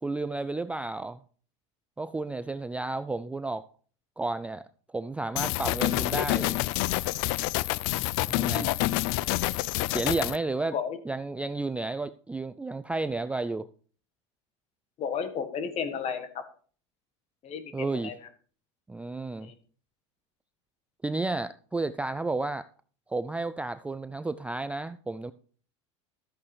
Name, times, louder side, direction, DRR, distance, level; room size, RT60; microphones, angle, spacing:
voice 1, 0.0-1.2 2.0-3.6 4.2-4.7 4.9-6.6 8.3-8.7 9.9-10.8 11.1-13.7 17.7-18.1 18.9-19.5 21.0-22.7 23.1-25.3, right 3 dB, 10° right, 0.3 m, -32 dB
sound 1, 5.4-10.4, left 18 dB, 60° left, 0.4 m, -27 dB
voice 2, 15.0-16.3 17.4-18.2 19.4-19.5, left 7 dB, 45° left, 1.5 m, -33 dB
13.0 x 8.5 x 3.3 m
hypercardioid pair, 100°, 16 cm